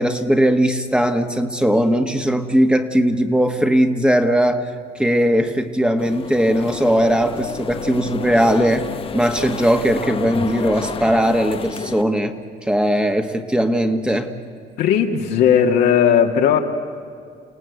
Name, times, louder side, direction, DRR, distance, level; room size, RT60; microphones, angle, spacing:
voice 1, 0.0-4.7 4.9-8.9 9.1-12.4 12.6-14.3, equal, 5° right, 6 dB, 1.4 m, -18 dB
sound 1, 6.0-12.0, left 6 dB, 35° left, 0.8 m, -30 dB
voice 2, 14.8-16.6, left 8 dB, 80° left, 3 dB, 2.1 m, -16 dB
29.0 x 17.5 x 8.3 m, 2.3 s
cardioid pair, 110°, 17 cm